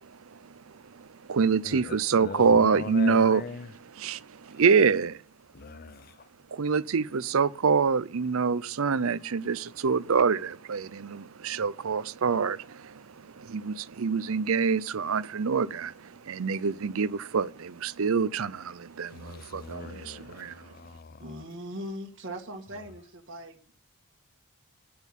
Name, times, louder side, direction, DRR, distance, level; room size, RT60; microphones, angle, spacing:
voice 1, 0.0-3.4 4.0-5.2 6.5-20.7, right 5 dB, 70° right, 0.6 m, -26 dB
voice 2, 1.6-3.7 5.5-6.3 19.1-21.4, left 4 dB, 45° left, 0.5 m, -40 dB
voice 3, 21.2-23.7, equal, 55° right, 1.6 m, -40 dB
10.5 x 8.1 x 7.3 m
head